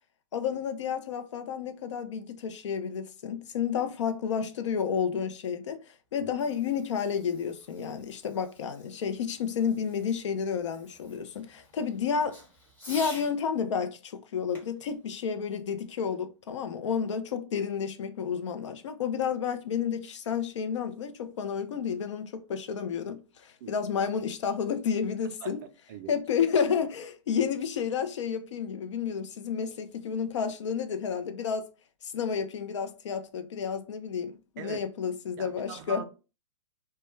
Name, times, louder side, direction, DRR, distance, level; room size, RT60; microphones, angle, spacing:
voice 1, 0.3-12.4 12.9-25.6 26.1-31.7 32.0-36.0, left 7 dB, 65° left, 0.5 m, -31 dB
Fireworks, 6.1-13.4 14.5-16.2, left 1 dB, 10° left, 0.9 m, -50 dB
voice 2, 35.4-36.0, right 8 dB, 40° right, 0.4 m, -41 dB
2.2 x 2.1 x 3.0 m
hypercardioid pair, 130°, 16 cm